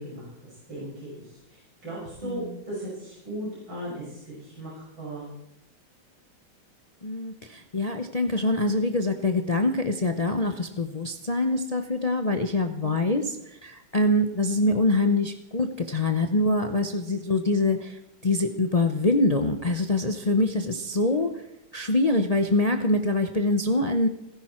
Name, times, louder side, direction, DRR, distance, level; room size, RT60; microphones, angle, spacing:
voice 1, 0.0-5.3 12.7-12.9, right 1 dB, 80° right, -8 dB, 7.1 m, -37 dB
voice 2, 7.0-21.4 21.7-24.1, left 2 dB, 65° left, 6 dB, 0.3 m, -24 dB
29.0 x 10.5 x 4.4 m, 0.83 s
omnidirectional pair, 2.1 m